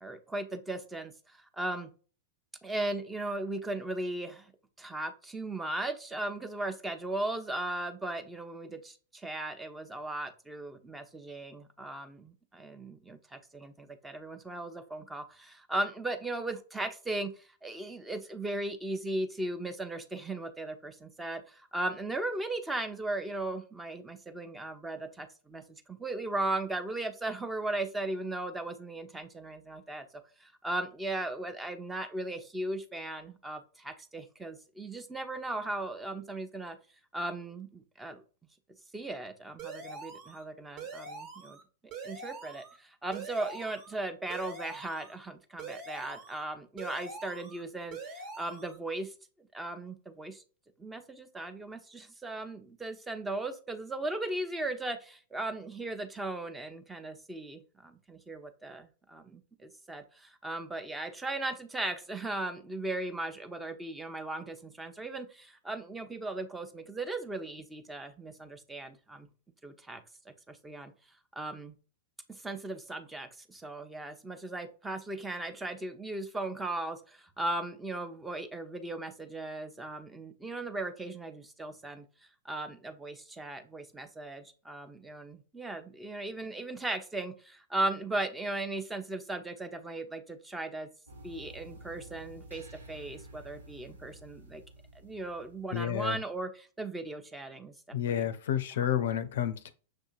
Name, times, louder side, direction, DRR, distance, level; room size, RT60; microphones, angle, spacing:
voice 1, 0.0-1.9 2.6-4.5 4.8-30.1 30.4-36.8 37.1-38.2 38.9-41.6 42.0-49.1 49.5-50.4 50.8-69.3 69.6-70.0 70.5-70.9 71.4-71.7 72.3-82.1 82.4-90.9 91.2-94.6 94.9-98.3 99.0-99.1, right 2 dB, 10° right, 0.6 m, -37 dB
sound 1, 39.6-40.4 40.8-41.6 41.9-42.8 43.1-44.0 44.3-45.1 45.6-46.4 46.8-47.6 47.9-48.8, right 4 dB, 40° right, 1.2 m, -44 dB
sound 2, 91.1-96.2, right 1 dB, 85° right, 0.9 m, -51 dB
voice 2, 95.7-96.2 97.9-99.7, left 10 dB, 65° left, 0.4 m, -30 dB
6.3 x 2.7 x 2.4 m
figure-of-eight pair, 100°, 0 cm